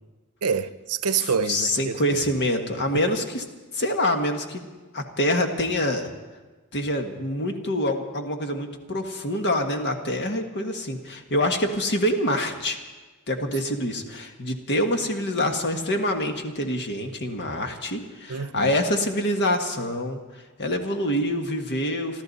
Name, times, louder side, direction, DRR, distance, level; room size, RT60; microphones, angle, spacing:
voice 1, 0.4-2.0 2.9-3.0 18.3-18.7, right 6 dB, 90° right, 0.7 m, -27 dB
voice 2, 1.5-3.4 3.7-4.6 4.9-6.1 6.7-12.8 13.3-20.2 20.6-22.2, left 1 dB, 50° left, 1.5 m, -26 dB
27.0 x 12.5 x 4.2 m
head